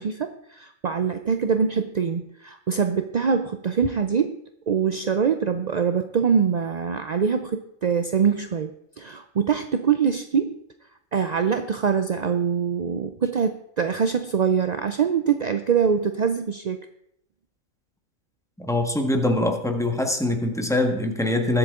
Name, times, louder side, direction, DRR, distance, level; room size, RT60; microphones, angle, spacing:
voice 1, 0.0-4.4 4.7-8.7 9.0-10.6 11.1-16.8, right 6 dB, 55° right, 8 dB, 0.4 m, -24 dB
voice 2, 18.6-21.6, left 1 dB, ahead, 3 dB, 1.4 m, -23 dB
21.0 x 8.0 x 3.7 m, 0.75 s
omnidirectional pair, 1.4 m